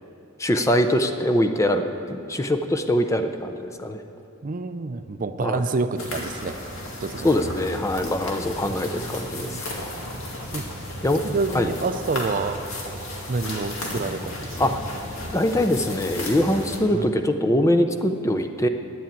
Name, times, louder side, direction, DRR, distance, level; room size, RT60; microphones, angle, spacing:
voice 1, 0.4-4.0 5.4-5.6 7.2-9.6 11.0-11.2 11.5-11.7 14.6-14.8 15.3-18.7, left 1 dB, 15° left, 7 dB, 0.5 m, -23 dB
voice 2, 4.4-6.6 7.0-7.3 8.7-9.6 10.5-10.7 11.2-12.6 13.3-14.7 16.9-17.1, right 3 dB, 40° right, 10 dB, 0.4 m, -28 dB
sound 1, 6.0-16.8, left 1 dB, 75° left, 2.1 m, -34 dB
10.0 x 8.4 x 8.9 m, 2.8 s
head